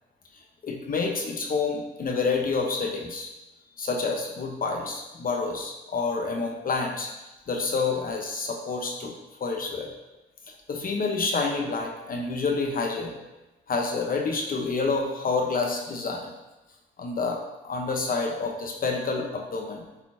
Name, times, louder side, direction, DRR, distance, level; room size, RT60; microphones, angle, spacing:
voice 1, 0.6-3.3 3.8-7.1 7.5-9.1 9.4-9.9 10.7-13.1 13.7-16.3 17.0-19.8, left 4 dB, 45° left, 1 dB, 1.0 m, -28 dB
9.8 x 4.3 x 2.8 m, 1.0 s
cardioid pair, 90°, 20 cm